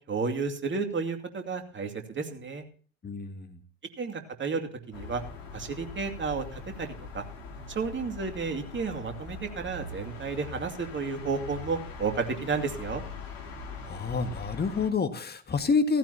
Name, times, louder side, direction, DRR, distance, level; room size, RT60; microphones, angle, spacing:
voice 1, 0.1-2.6 4.0-5.2 5.5-7.2 7.7-13.0, right 5 dB, 30° right, 5 dB, 2.6 m, -32 dB
voice 2, 3.0-3.6 13.8-16.0, left 4 dB, 25° left, 7 dB, 1.7 m, -28 dB
sound 1, 4.9-14.9, left 4 dB, 80° left, 2.5 m, -42 dB
15.5 x 15.0 x 2.8 m, 0.43 s
figure-of-eight pair, 65°, 39 cm